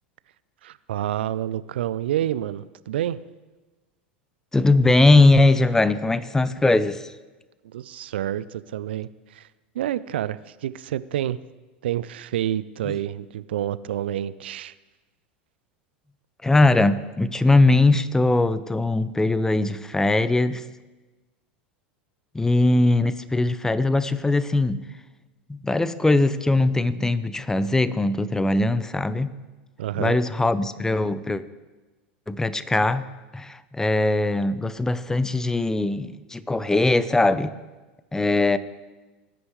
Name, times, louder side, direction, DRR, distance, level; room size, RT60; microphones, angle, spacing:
voice 1, 0.6-3.2 7.7-9.5 9.7-11.4 11.8-14.7 29.8-30.2, right 12 dB, 75° right, 0.4 m, -28 dB
voice 2, 4.5-7.1 16.4-20.6 22.3-24.8 25.5-29.3 30.0-31.4 32.3-33.0 33.3-37.5 38.1-38.6, left 2 dB, 10° left, 0.6 m, -20 dB
18.5 x 9.5 x 3.2 m
hypercardioid pair, 90°, 6 cm